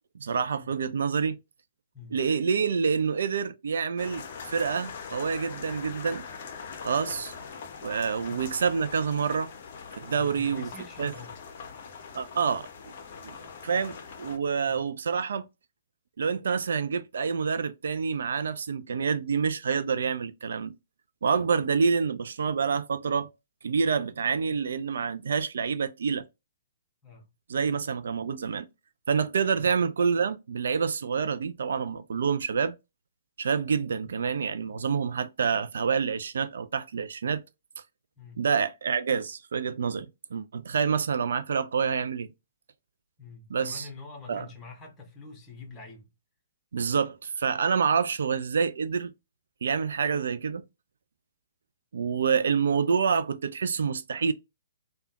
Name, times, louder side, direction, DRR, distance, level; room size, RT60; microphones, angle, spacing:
voice 1, 0.1-1.4 2.1-6.2 6.8-7.3 7.8-9.5 9.9-10.7 11.0-11.1 12.1-12.9 13.2-13.3 13.6-15.5 16.2-20.7 21.2-23.3 23.6-26.2 27.5-28.7 29.1-32.7 33.4-37.4 38.4-42.3 43.5-43.9 44.3-44.5 46.7-49.1 49.6-50.6 51.9-54.3, right 6 dB, 60° right, 0.3 m, -27 dB
sound 1, 4.0-14.4, left 5 dB, 45° left, 0.6 m, -42 dB
voice 2, 10.1-11.4 14.6-14.8 27.0-27.3 29.6-29.7 38.2-38.4 43.2-46.1, left 4 dB, 15° left, 1.0 m, -46 dB
3.4 x 2.2 x 2.8 m
figure-of-eight pair, 120°, 0 cm